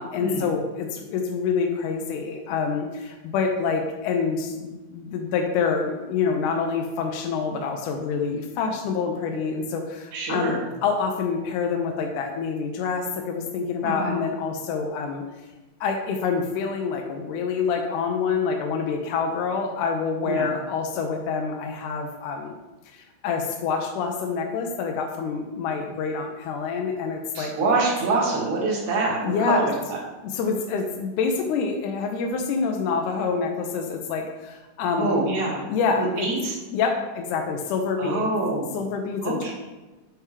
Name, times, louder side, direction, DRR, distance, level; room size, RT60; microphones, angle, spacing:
voice 1, 0.0-15.2 15.8-22.6 22.9-27.5 29.2-29.6 30.2-35.2 35.7-36.3 36.7-38.3 38.7-39.5, left 5 dB, 80° left, 3 dB, 1.9 m, -27 dB
voice 2, 10.1-10.6 13.8-14.2 20.2-20.5 27.3-30.0 35.0-35.7 36.0-36.6 38.0-38.7 39.2-39.5, right 3 dB, 65° right, -3 dB, 2.6 m, -25 dB
9.1 x 3.4 x 3.1 m, 1.1 s
omnidirectional pair, 4.1 m